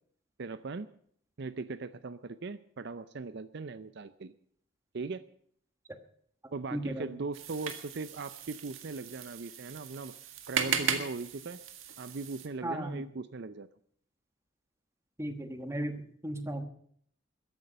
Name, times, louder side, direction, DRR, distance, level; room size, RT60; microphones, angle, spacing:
voice 1, 0.4-0.9 1.4-4.3 4.9-5.2 6.5-10.1 10.5-11.6 12.0-13.7, right 3 dB, 55° right, 14 dB, 0.5 m, -39 dB
voice 2, 6.7-7.1 12.6-13.0 15.2-16.7, right 1 dB, 15° right, 8 dB, 1.2 m, -36 dB
sound 1, 7.3-12.5, right 6 dB, 75° right, 1.8 m, -37 dB
14.5 x 11.0 x 7.8 m, 0.63 s
head